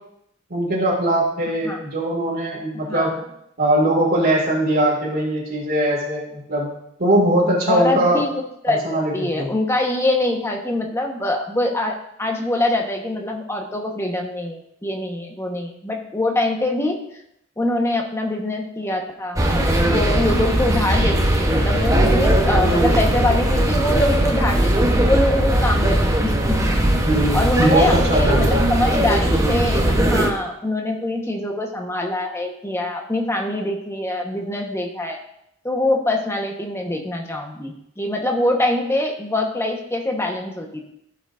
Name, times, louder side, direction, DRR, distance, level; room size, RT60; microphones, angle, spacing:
voice 1, 0.5-3.2 3.6-6.7 7.0-8.2 8.7-9.5 27.0-28.6, right 1 dB, 50° right, -6 dB, 2.3 m, -20 dB
voice 2, 2.7-3.1 7.7-8.3 8.6-17.0 17.6-19.4 19.9-26.7 27.3-35.2 35.6-40.9, left 1 dB, 15° left, 1 dB, 1.2 m, -24 dB
sound 1, 19.4-30.3, right 1 dB, 15° right, 1.0 m, -19 dB
15.5 x 6.0 x 2.6 m, 0.77 s
head